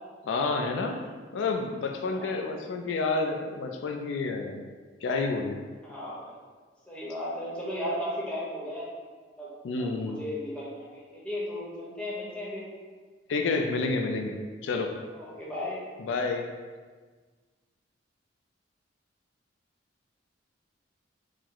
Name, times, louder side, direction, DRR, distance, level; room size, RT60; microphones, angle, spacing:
voice 1, 0.2-0.9 1.3-4.6 5.0-5.6 9.6-10.2 13.3-14.3 14.6-14.9 16.0-16.4, left 3 dB, 80° left, 3 dB, 0.4 m, -29 dB
voice 2, 5.8-6.3 6.9-9.0 9.4-9.5 9.8-12.6 15.1-15.9, left 1 dB, 5° left, -7 dB, 0.9 m, -35 dB
4.6 x 2.1 x 3.8 m, 1.4 s
head